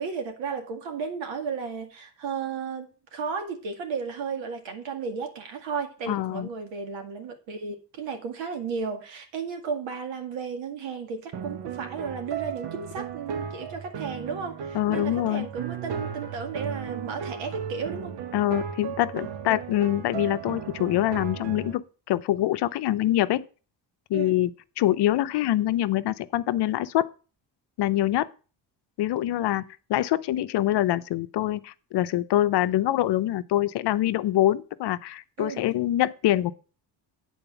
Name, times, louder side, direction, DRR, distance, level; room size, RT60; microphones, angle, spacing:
voice 1, 0.0-18.1 24.1-24.4 35.4-35.7, right 5 dB, 85° right, 2.1 m, -34 dB
voice 2, 6.1-6.5 14.7-15.5 18.3-23.4 24.1-24.5 24.8-27.1 27.8-28.3 29.0-29.6 29.9-36.5, left 13 dB, 65° left, 0.7 m, -25 dB
sound 1, 11.3-21.8, right 7 dB, 60° right, 1.0 m, -35 dB
8.8 x 4.3 x 7.0 m
cardioid pair, 125°, 44 cm